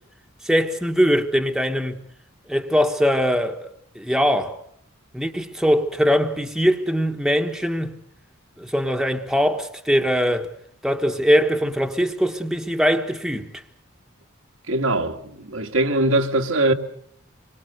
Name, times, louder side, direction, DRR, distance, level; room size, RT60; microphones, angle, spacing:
voice 1, 0.4-2.0 2.5-4.6 5.1-7.9 8.6-10.5 10.8-13.5, equal, ahead, 1.2 m, -21 dB
voice 2, 14.7-16.7, right 2 dB, 80° right, 2.0 m, -21 dB
26.0 x 23.5 x 6.6 m
head